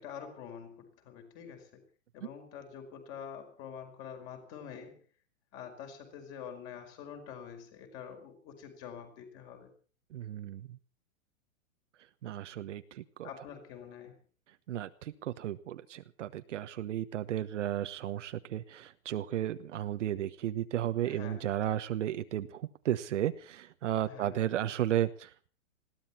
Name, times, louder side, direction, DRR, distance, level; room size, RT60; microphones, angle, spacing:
voice 1, 0.0-1.8 2.1-5.0 5.5-9.7 13.2-14.1 21.0-21.4 24.0-24.4, left 7 dB, 30° left, 5 dB, 5.0 m, -46 dB
voice 2, 10.1-10.6 12.2-13.3 14.7-25.5, right 11 dB, 60° right, 11 dB, 1.3 m, -34 dB
21.0 x 16.0 x 4.3 m, 0.40 s
hypercardioid pair, 160°, 41 cm